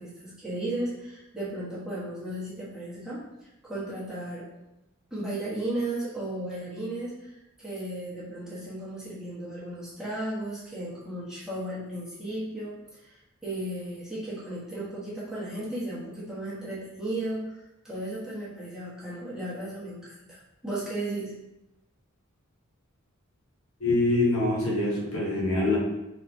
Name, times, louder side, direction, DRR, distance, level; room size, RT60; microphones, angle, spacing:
voice 1, 0.0-3.2 3.6-4.5 5.1-17.5 17.8-21.3, right 1 dB, 5° right, -10 dB, 1.4 m, -35 dB
voice 2, 23.8-25.8, left 2 dB, 75° left, -3 dB, 1.1 m, -24 dB
4.7 x 3.8 x 2.7 m, 0.93 s
head